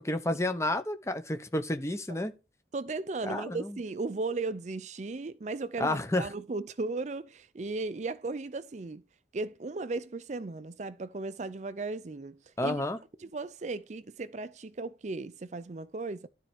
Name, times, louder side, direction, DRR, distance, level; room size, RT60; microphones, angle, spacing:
voice 1, 0.0-2.3 3.2-3.8 5.8-6.3 12.6-13.0, left 1 dB, 15° left, 1.0 m, -30 dB
voice 2, 2.7-9.0 9.3-12.8 13.2-16.3, right 3 dB, 40° right, 0.5 m, -36 dB
12.5 x 4.5 x 6.2 m
head